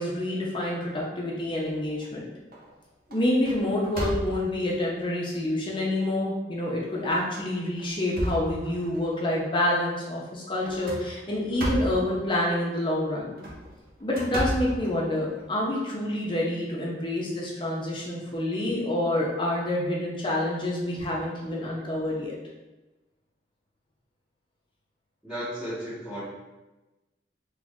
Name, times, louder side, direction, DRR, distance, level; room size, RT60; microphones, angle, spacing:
voice 1, 0.0-2.2 3.1-13.3 14.0-22.3, left 1 dB, 25° left, -3 dB, 0.6 m, -27 dB
sound 1, 1.5-2.1 2.5-2.8 3.1-4.7 5.4-5.5 5.9-6.0 7.0-7.2 7.7-9.1 10.6-12.1 13.2-15.5, equal, 50° right, 0.6 m, -33 dB
voice 2, 25.2-26.2, equal, 5° right, -17 dB, 1.1 m, -34 dB
3.1 x 2.5 x 3.5 m, 1.1 s
head